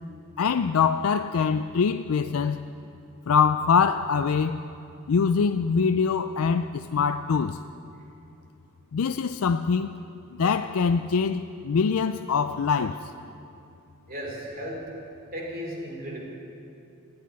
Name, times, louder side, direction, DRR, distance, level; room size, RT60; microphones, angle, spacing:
voice 1, 0.4-2.6 3.3-4.6 5.1-7.6 8.9-10.0 10.3-13.0, left 6 dB, 70° left, 9 dB, 0.4 m, -24 dB
voice 2, 14.1-14.8 15.3-16.2, equal, 40° right, -1 dB, 2.9 m, -35 dB
15.5 x 9.5 x 9.5 m, 2.7 s
head